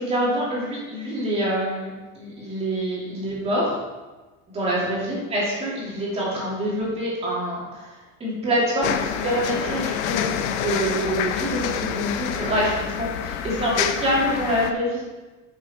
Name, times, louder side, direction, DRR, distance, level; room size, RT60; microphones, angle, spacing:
voice 1, 0.0-3.8 4.5-15.0, equal, 20° right, -6 dB, 2.8 m, -26 dB
sound 1, 8.8-14.7, left 9 dB, 80° left, 0.8 m, -27 dB
11.0 x 6.4 x 4.3 m, 1.2 s
cardioid pair, 175°, 34 cm